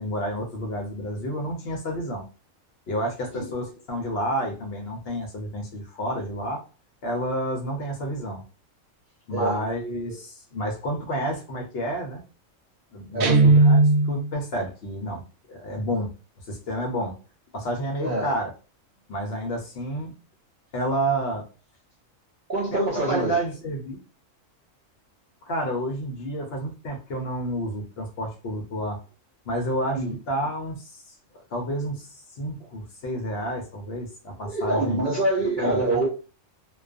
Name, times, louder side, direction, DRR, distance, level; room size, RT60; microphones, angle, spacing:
voice 1, 0.0-2.2 2.9-6.6 7.0-8.4 9.3-12.2 12.9-15.2 15.5-16.1 16.5-17.1 17.5-18.5 19.1-20.1 20.7-21.4 22.7-24.0 25.5-29.0 29.5-31.2 31.5-35.0 35.6-36.0, equal, 60° left, 0.7 m, -30 dB
voice 2, 9.3-9.6 13.1-13.4 18.0-18.4 22.5-23.4 29.9-30.1 34.4-36.1, right 2 dB, 60° right, 0.5 m, -25 dB
Guitar, 13.2-14.4, right 3 dB, 85° right, 1.0 m, -17 dB
2.3 x 2.2 x 2.4 m
omnidirectional pair, 1.4 m